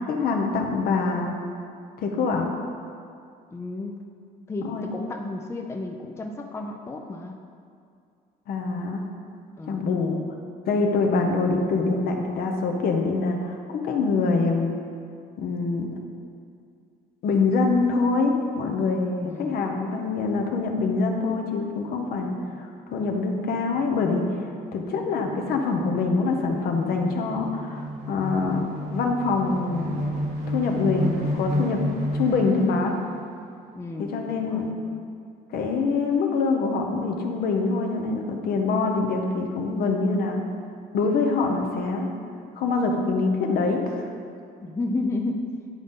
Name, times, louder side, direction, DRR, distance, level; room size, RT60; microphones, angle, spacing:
voice 1, 0.1-1.4 2.0-2.5 4.6-4.9 8.5-9.0 9.7-10.2 10.7-14.7 15.4-15.9 17.2-24.2 24.7-28.6 28.9-30.0 30.5-31.8 32.1-32.9 34.0-34.7 35.5-40.4 40.9-42.1 42.6-43.9, left 4 dB, 65° left, 2 dB, 0.9 m, -25 dB
voice 2, 3.5-4.0 4.5-7.4 9.6-10.0 19.2-19.7 24.9-25.1 33.7-35.0 44.6-45.4, left 2 dB, 15° left, 2 dB, 0.5 m, -32 dB
sound 1, 23.5-32.9, equal, 70° right, 1.6 m, -32 dB
9.6 x 4.0 x 3.7 m, 2.3 s
cardioid pair, 110°, 17 cm